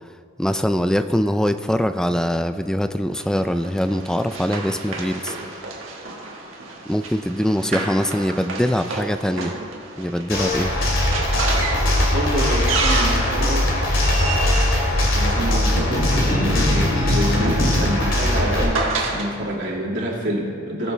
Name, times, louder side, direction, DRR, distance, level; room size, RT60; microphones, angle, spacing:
voice 1, 0.4-5.4 6.9-9.5 10.0-10.7, equal, 5° left, 10 dB, 0.3 m, -22 dB
Run, 3.2-15.8 16.8-19.3, right 3 dB, 85° right, 1.5 m, -30 dB
sound 1, 10.3-18.6, left 1 dB, 85° left, 2.5 m, -20 dB
voice 2, 12.1-13.8 15.1-20.9, right 1 dB, 65° right, -4 dB, 2.2 m, -27 dB
19.0 x 6.9 x 3.3 m, 2.2 s
head